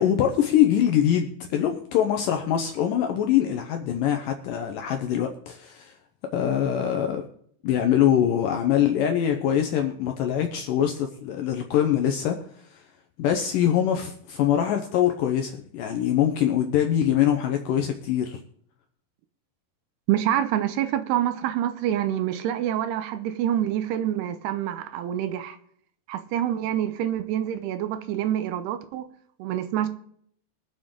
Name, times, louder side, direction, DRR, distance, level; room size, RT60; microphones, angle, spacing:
voice 1, 0.0-6.0 6.3-7.2 7.6-12.9 13.2-18.4, left 10 dB, 75° left, 2.0 m, -23 dB
voice 2, 20.1-25.6 26.1-29.1 29.4-29.9, right 11 dB, 85° right, 2.7 m, -26 dB
22.0 x 7.4 x 3.8 m
omnidirectional pair, 4.8 m